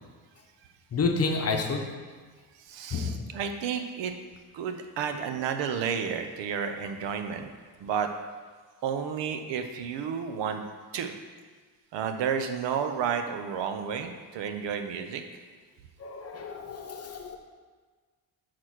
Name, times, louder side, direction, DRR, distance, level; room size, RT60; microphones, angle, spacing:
voice 1, 0.9-1.9 2.9-3.2 16.0-17.4, left 4 dB, 35° left, 3 dB, 0.9 m, -29 dB
voice 2, 2.7-4.1 4.5-7.5 7.8-8.1 8.8-10.6 10.9-11.1 11.9-15.2, right 7 dB, 85° right, 7 dB, 0.8 m, -31 dB
6.4 x 4.2 x 6.2 m, 1.5 s
cardioid pair, 130°, 42 cm